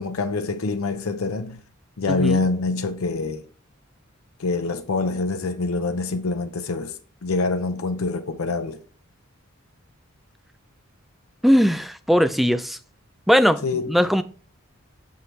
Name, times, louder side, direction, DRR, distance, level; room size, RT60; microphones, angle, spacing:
voice 1, 0.0-1.6 2.0-3.4 4.4-8.8 13.6-13.9, left 3 dB, 85° left, 0.6 m, -25 dB
voice 2, 2.1-2.4 11.4-12.8 13.3-14.2, equal, ahead, 0.3 m, -19 dB
6.1 x 5.6 x 3.2 m
head